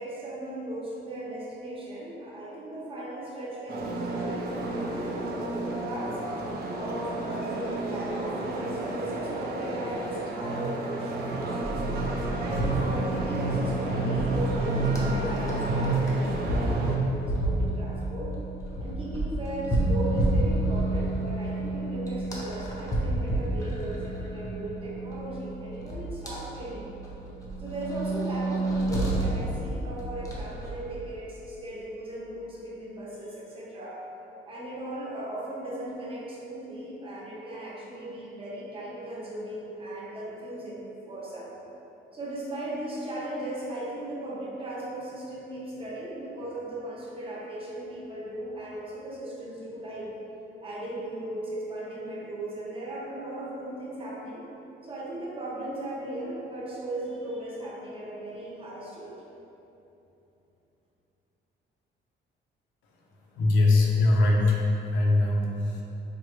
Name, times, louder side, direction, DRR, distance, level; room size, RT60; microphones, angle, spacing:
voice 1, 0.0-6.2 6.7-11.9 12.4-18.3 18.8-26.9 27.6-34.0 34.4-41.5 42.1-50.1 50.6-54.4 54.8-59.1, right 1 dB, 25° right, -6 dB, 0.8 m, -37 dB
sound 1, 3.7-17.0, right 2 dB, 50° right, 0.5 m, -30 dB
sound 2, 11.6-30.9, right 1 dB, 15° left, 0.7 m, -31 dB
voice 2, 63.4-64.6 64.9-65.8, left 2 dB, 80° left, -2 dB, 0.5 m, -22 dB
3.4 x 2.1 x 3.0 m, 3.0 s
cardioid pair, 90°, 20 cm